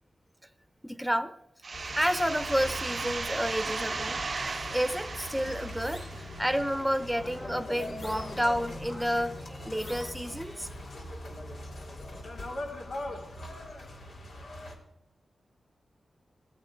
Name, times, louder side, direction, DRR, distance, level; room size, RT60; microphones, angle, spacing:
voice 1, 0.8-1.3 1.9-4.2 4.7-6.0 6.4-10.7, equal, 5° right, 12 dB, 1.0 m, -30 dB
sound 1, 1.6-7.2, right 4 dB, 55° right, 0.5 m, -36 dB
sound 2, 1.7-14.7, left 1 dB, 80° left, 3.0 m, -41 dB
sound 3, 5.8-6.2 7.7-8.6 9.7-10.4, left 2 dB, 45° left, 4.0 m, -49 dB
17.5 x 14.0 x 4.8 m, 0.82 s
cardioid pair, 60°, 0 cm